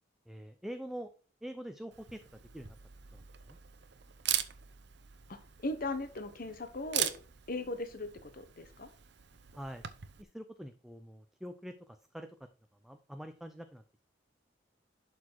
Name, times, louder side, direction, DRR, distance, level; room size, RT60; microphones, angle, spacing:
voice 1, 0.3-1.1 1.4-2.2 2.5-2.8 3.1-3.2 3.5-3.6 9.5-9.8 10.2-12.5 12.8-13.8, equal, ahead, 8 dB, 0.6 m, -45 dB
Camera, 1.9-10.2, right 11 dB, 65° right, 0.8 m, -40 dB
voice 2, 5.3-7.1 7.5-8.9, left 2 dB, 50° left, 9 dB, 1.1 m, -38 dB
11.5 x 4.3 x 4.6 m, 0.38 s
head